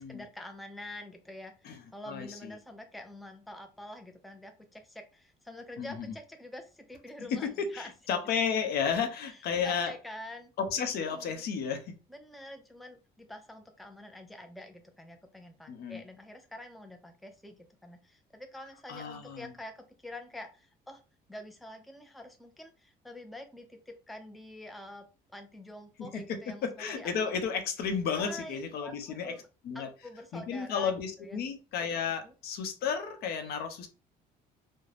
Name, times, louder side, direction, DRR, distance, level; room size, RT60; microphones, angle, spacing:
voice 1, 0.0-7.9 9.3-10.5 11.0-11.4 12.1-21.0 21.3-27.1 28.1-29.5 29.7-30.9 31.2-31.4 32.2-32.3, left 1 dB, ahead, 0.4 m, -47 dB
voice 2, 2.1-2.6 5.8-5.9 7.3-9.9 10.6-11.9 15.7-16.0 18.9-19.5 26.1-29.3 29.7-29.9 30.3-33.9, left 6 dB, 70° left, 0.6 m, -32 dB
2.4 x 2.1 x 3.2 m
cardioid pair, 110°, 17 cm